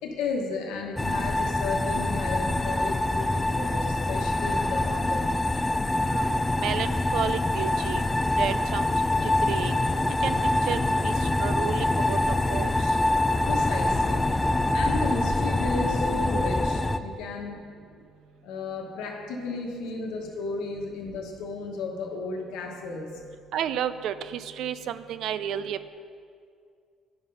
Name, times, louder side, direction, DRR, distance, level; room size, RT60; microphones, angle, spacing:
voice 1, 0.0-5.4 13.3-14.4 14.7-17.7 18.4-23.2, left 3 dB, 90° left, 1 dB, 1.2 m, -34 dB
sound 1, 1.0-17.0, left 2 dB, 10° left, 0.3 m, -25 dB
voice 2, 6.0-8.0 8.4-9.8 10.2-10.4 10.7-13.0 23.5-25.9, right 9 dB, 70° right, 13 dB, 0.4 m, -32 dB
9.9 x 5.7 x 5.4 m, 2.2 s
cardioid pair, 110°, 0 cm